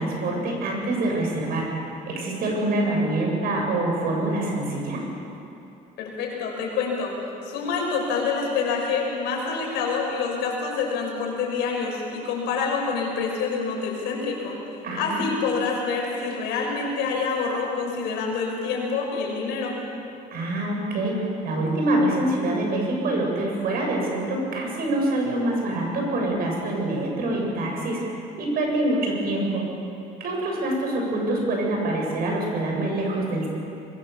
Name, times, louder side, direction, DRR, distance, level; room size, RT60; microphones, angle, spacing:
voice 1, 0.0-5.0 14.8-15.2 20.3-29.7 30.2-33.5, right 1 dB, 60° right, 0 dB, 7.7 m, -25 dB
voice 2, 6.0-7.1 7.5-14.6 15.0-19.8, left 5 dB, 85° left, -1 dB, 6.3 m, -27 dB
24.0 x 22.0 x 7.2 m, 2.8 s
cardioid pair, 110°, 17 cm